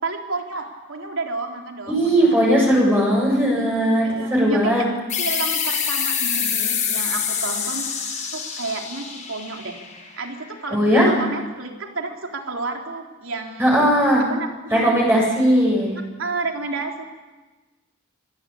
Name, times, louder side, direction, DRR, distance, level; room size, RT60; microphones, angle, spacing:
voice 1, 0.0-2.4 4.0-4.8 5.2-7.9 8.3-9.8 10.2-13.7 14.2-15.0 16.2-17.0, right 3 dB, 70° right, 2 dB, 3.8 m, -30 dB
voice 2, 1.9-4.9 10.7-11.1 13.6-14.2 14.7-16.0, equal, 10° right, -3 dB, 7.8 m, -18 dB
sound 1, 5.1-10.4, left 7 dB, 40° left, 5.7 m, -26 dB
25.5 x 19.5 x 8.7 m, 1.2 s
head